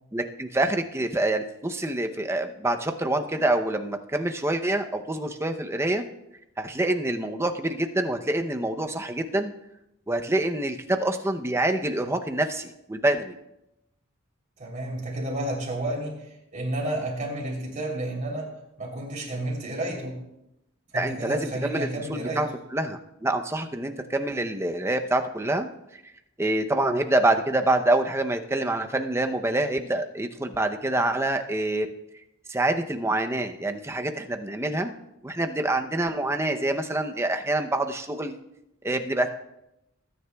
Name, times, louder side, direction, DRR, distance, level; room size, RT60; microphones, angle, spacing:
voice 1, 0.1-6.0 6.6-9.5 10.1-13.3 20.9-22.5 22.7-25.7 26.4-31.9 32.5-34.9 35.2-38.3 38.8-39.3, right 1 dB, 15° right, 6 dB, 0.6 m, -26 dB
voice 2, 14.6-18.5 18.8-20.2 20.9-22.5, right 1 dB, 35° right, -1 dB, 3.2 m, -31 dB
21.0 x 9.6 x 2.3 m, 0.86 s
head